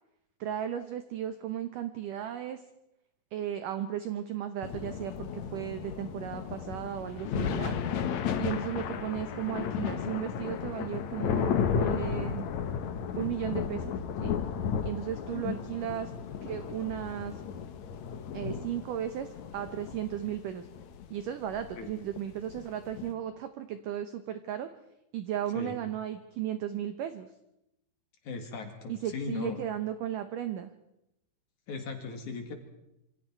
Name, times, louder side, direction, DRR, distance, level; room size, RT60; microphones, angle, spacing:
voice 1, 0.4-2.6 3.3-7.7 8.4-12.5 13.1-14.0 14.2-14.3 14.8-16.1 16.4-17.4 18.3-20.7 21.1-24.7 25.1-27.3 28.9-30.7, right 10 dB, 85° right, 9 dB, 1.8 m, -35 dB
sound 1, 4.6-23.1, left 7 dB, 85° left, 1.6 m, -34 dB
voice 2, 15.1-15.6 21.8-21.9 25.5-25.8 28.2-29.6 31.7-32.5, left 5 dB, 50° left, 5 dB, 3.0 m, -38 dB
26.5 x 25.5 x 4.6 m, 0.86 s
omnidirectional pair, 5.1 m